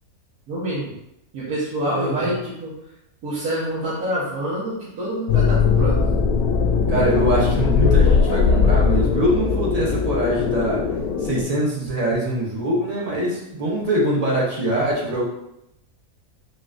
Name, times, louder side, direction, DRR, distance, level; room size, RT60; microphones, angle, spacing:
voice 1, 0.5-0.9 1.3-2.7 3.2-6.0, equal, 90° right, -10 dB, 1.5 m, -26 dB
voice 2, 1.9-2.3 6.9-10.8 11.2-15.2, right 1 dB, 45° right, -5 dB, 0.4 m, -23 dB
sound 1, 5.3-11.4, left 5 dB, 75° left, 1.0 m, -19 dB
4.2 x 2.4 x 2.4 m, 0.83 s
omnidirectional pair, 1.6 m